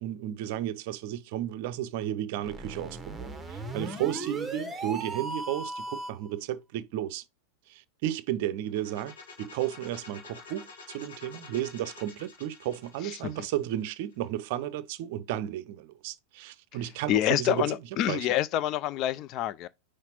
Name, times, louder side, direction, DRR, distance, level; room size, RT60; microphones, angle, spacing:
voice 1, 0.0-7.2 7.7-17.7 18.1-18.3, right 12 dB, 50° right, 0.6 m, -33 dB
sound 1, 2.4-6.3, right 2 dB, 5° right, 1.0 m, -37 dB
sound 2, 8.6-14.5, left 4 dB, 60° left, 1.8 m, -49 dB
voice 2, 13.0-13.5 17.1-19.7, left 13 dB, 35° left, 0.5 m, -27 dB
5.8 x 3.2 x 5.6 m
figure-of-eight pair, 90°, 0 cm